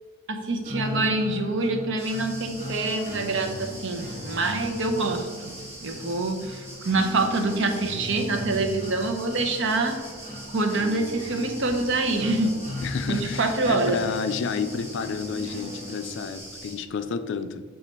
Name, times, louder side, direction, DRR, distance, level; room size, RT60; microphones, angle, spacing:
voice 1, 0.3-5.5 5.8-10.0 10.5-12.6 13.1-14.0, right 2 dB, 65° right, 5 dB, 0.7 m, -26 dB
sound 1, 0.6-16.6, left 1 dB, 35° right, 1.5 m, -37 dB
sound 2, 2.0-16.8, right 1 dB, 10° right, 1.2 m, -43 dB
voice 2, 12.8-17.6, left 5 dB, 60° left, 10 dB, 0.4 m, -30 dB
7.3 x 2.4 x 5.2 m, 1.5 s
head